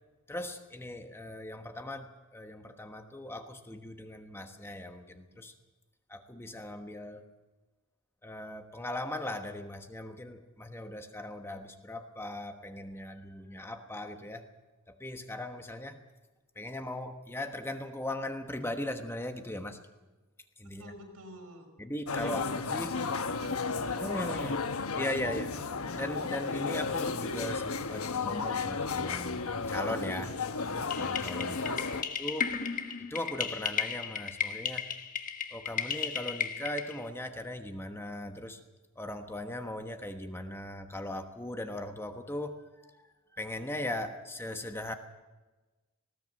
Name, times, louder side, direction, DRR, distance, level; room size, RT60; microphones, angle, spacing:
voice 1, 0.3-5.5 6.1-7.2 8.2-14.5 14.9-16.0 16.6-19.8 20.6-20.8 21.8-23.0 24.0-24.6 24.9-25.5 25.9-30.3 30.9-32.5 33.1-34.9 35.5-38.6 39.0-42.6 42.8-43.0 43.3-44.9, left 1 dB, 10° left, 6 dB, 1.2 m, -39 dB
voice 2, 20.8-21.7 22.2-24.8 31.5-32.0, right 1 dB, 90° right, 3 dB, 5.3 m, -48 dB
sound 1, 22.1-32.0, left 4 dB, 70° left, 1.2 m, -33 dB
sound 2, 30.9-37.0, left 7 dB, 35° left, 1.4 m, -35 dB
19.5 x 17.5 x 7.8 m, 1.2 s
head